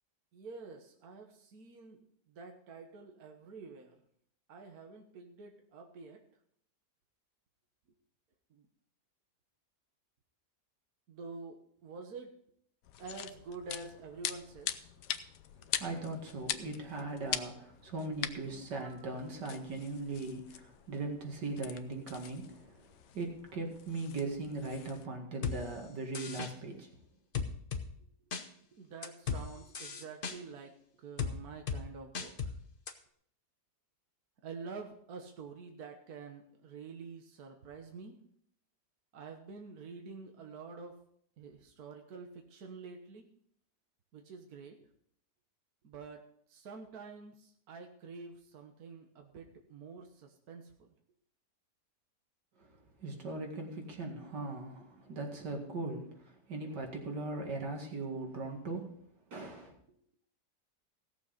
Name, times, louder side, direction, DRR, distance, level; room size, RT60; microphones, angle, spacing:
voice 1, 0.3-4.0 4.5-6.2 8.5-8.7 11.1-12.4 13.0-14.9 28.6-32.6 34.4-38.2 39.1-41.0 41.4-43.3 44.1-44.8 45.8-46.2 46.5-50.9, right 4 dB, 65° right, 3 dB, 1.7 m, -48 dB
sound 1, 12.8-25.1, left 10 dB, 80° left, 1.3 m, -43 dB
voice 2, 15.8-22.9 23.1-26.9 53.0-58.9 59.3-59.7, right 2 dB, 90° right, 2 dB, 2.7 m, -39 dB
sound 2, 25.4-25.6 26.1-26.5 27.3-27.8 28.3-28.4 29.0-29.4 29.7-30.4 31.2-31.3 31.7-31.8 32.1-32.5 32.9-33.0, left 6 dB, 40° left, 1.0 m, -35 dB
17.0 x 7.1 x 5.1 m, 0.66 s
omnidirectional pair, 1.8 m